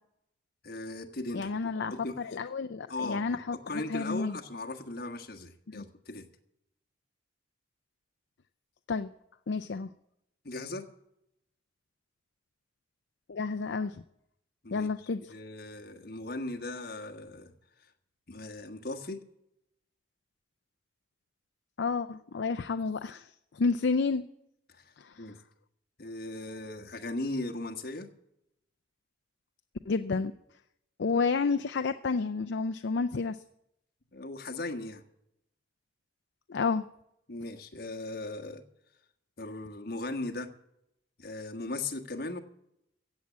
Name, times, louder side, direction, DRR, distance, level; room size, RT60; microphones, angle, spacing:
voice 1, 0.6-2.2 2.9-3.4 3.7-6.3 10.4-10.9 14.6-14.9 15.3-17.5 18.3-19.2 24.7-25.3 26.0-28.1 34.1-35.0 37.3-38.6 39.4-40.5 41.2-42.4, left 2 dB, 55° left, 4 dB, 1.5 m, -38 dB
voice 2, 1.3-4.4 5.7-5.8 8.9-9.1 9.5-9.9 13.3-14.0 14.7-15.3 21.8-24.3 25.0-25.3 29.9-30.3 31.0-33.4 36.5-36.8, left 4 dB, 70° left, 10 dB, 0.5 m, -30 dB
16.0 x 7.6 x 8.3 m, 0.80 s
head